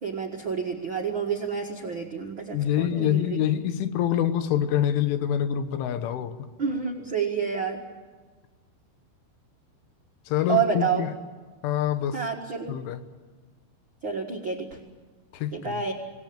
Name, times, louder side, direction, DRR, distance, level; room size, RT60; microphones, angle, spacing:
voice 1, 0.0-3.4 6.6-7.8 10.5-11.1 12.1-12.7 14.0-14.8 15.5-15.9, right 6 dB, 65° right, 1.2 m, -29 dB
voice 2, 2.5-6.4 10.3-11.1 11.6-12.2 12.7-13.0 15.3-15.8, left 10 dB, 90° left, 3.7 m, -26 dB
26.0 x 19.0 x 8.8 m
omnidirectional pair, 5.4 m